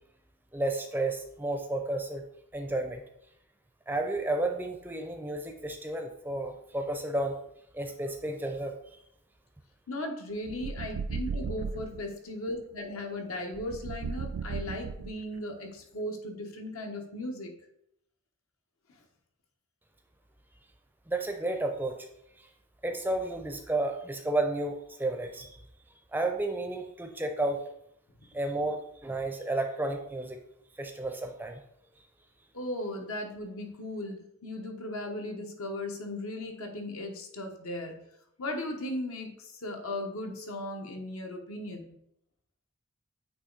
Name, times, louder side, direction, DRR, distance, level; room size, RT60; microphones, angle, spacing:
voice 1, 0.5-2.2 2.5-3.0 3.9-7.4 7.7-9.0 21.1-22.0 22.4-22.5 22.8-25.6 26.1-27.6 28.3-30.4 30.8-31.6, right 2 dB, 10° right, 4 dB, 0.5 m, -32 dB
voice 2, 9.9-17.6 28.2-28.3 32.5-38.0 38.4-42.0, left 1 dB, 75° left, 3 dB, 1.1 m, -37 dB
sound 1, 10.4-12.0 13.5-15.4, right 5 dB, 85° right, 0.4 m, -35 dB
8.5 x 3.0 x 3.9 m, 0.75 s
head